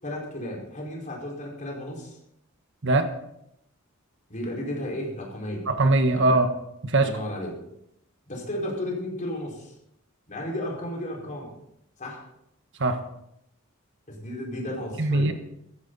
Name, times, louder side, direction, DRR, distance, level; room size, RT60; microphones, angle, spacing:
voice 1, 0.0-2.2 4.3-5.7 6.1-6.4 6.9-7.5 8.3-9.7 10.3-11.5 12.0-12.2 14.1-15.3, left 1 dB, 35° left, -1 dB, 5.0 m, -33 dB
voice 2, 5.7-6.5 6.8-7.1 12.8-13.0 15.0-15.3, right 2 dB, 55° right, 8 dB, 1.3 m, -21 dB
15.5 x 14.5 x 4.1 m, 0.78 s
head